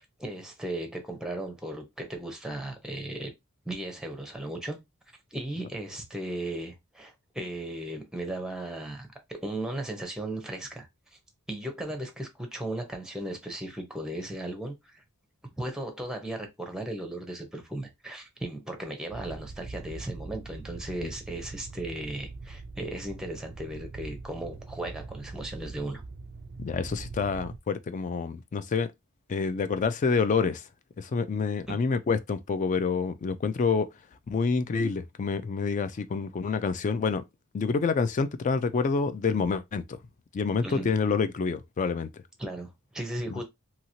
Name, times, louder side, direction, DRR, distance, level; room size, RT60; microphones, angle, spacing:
voice 1, 0.0-3.3 3.6-4.8 5.3-10.9 11.5-15.0 15.6-26.0 31.7-31.8 40.6-40.9 42.4-43.4, right 1 dB, 5° right, 0.7 m, -36 dB
sound 1, 19.1-27.6, right 3 dB, 45° right, 0.4 m, -42 dB
voice 2, 26.6-28.9 29.3-30.6 31.0-33.9 34.3-37.2 37.5-40.0 40.3-42.1 43.3-43.4, left 5 dB, 35° left, 0.3 m, -27 dB
2.9 x 2.8 x 2.7 m
head